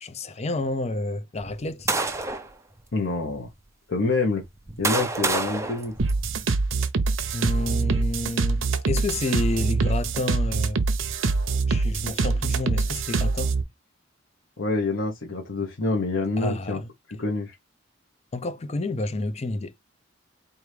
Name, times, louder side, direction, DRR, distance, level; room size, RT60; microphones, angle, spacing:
voice 1, 0.0-1.9 7.3-10.8 11.7-13.6 16.4-16.9 18.3-19.7, left 2 dB, 35° left, 0.5 m, -29 dB
sound 1, 1.4-2.5 3.3-3.4 4.3-6.7, right 3 dB, 15° right, 0.6 m, -28 dB
voice 2, 2.9-3.5 3.9-4.4 4.8-5.9 14.6-16.8 17.1-17.5, left 3 dB, 75° left, 1.0 m, -26 dB
sound 2, 6.0-13.6, right 4 dB, 85° right, 0.7 m, -24 dB
4.6 x 2.6 x 3.2 m
head